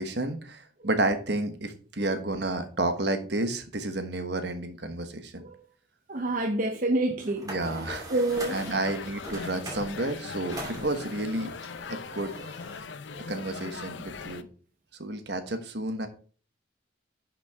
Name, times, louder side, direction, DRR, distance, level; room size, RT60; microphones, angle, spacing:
voice 1, 0.0-5.4 7.4-8.0 8.5-11.5 11.9-12.3 13.3-14.5 15.0-16.1, right 2 dB, 60° right, 1.2 m, -31 dB
voice 2, 6.1-7.5 8.1-8.6 13.1-13.3, right 2 dB, 45° right, 0.8 m, -28 dB
sound 1, 7.2-10.0 10.3-12.8, right 1 dB, 20° right, 2.5 m, -42 dB
sound 2, 8.3-14.4, left 5 dB, 75° left, 0.6 m, -40 dB
10.5 x 5.8 x 3.6 m
head